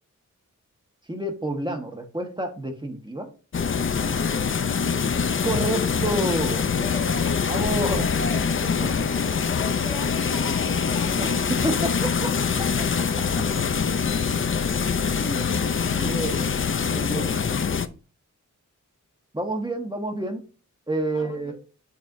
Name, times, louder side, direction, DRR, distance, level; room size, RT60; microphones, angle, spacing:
voice 1, 1.1-3.3 5.4-6.7 7.4-8.0 8.6-8.9 11.2-13.6 15.2-17.4 19.3-20.4 20.9-21.5, right 1 dB, 15° right, 4 dB, 1.3 m, -30 dB
sound 1, 3.5-17.9, left 6 dB, 40° left, 0.5 m, -24 dB
voice 2, 6.7-8.4 9.5-11.3 21.1-21.5, left 2 dB, 75° left, 0 dB, 2.1 m, -37 dB
8.4 x 4.3 x 2.6 m, 0.36 s
wide cardioid pair, 65°, 31 cm